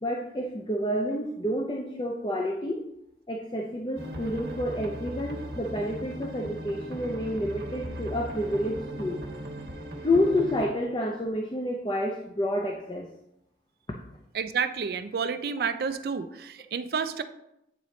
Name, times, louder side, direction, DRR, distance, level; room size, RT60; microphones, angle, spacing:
voice 1, 0.0-2.8 3.3-9.2 10.0-13.1, left 1 dB, 25° left, 1 dB, 0.5 m, -29 dB
sound 1, 3.9-10.6, equal, 75° right, 1.2 m, -38 dB
voice 2, 14.3-17.2, right 6 dB, 60° right, 11 dB, 0.4 m, -30 dB
8.7 x 3.9 x 3.1 m, 0.83 s
head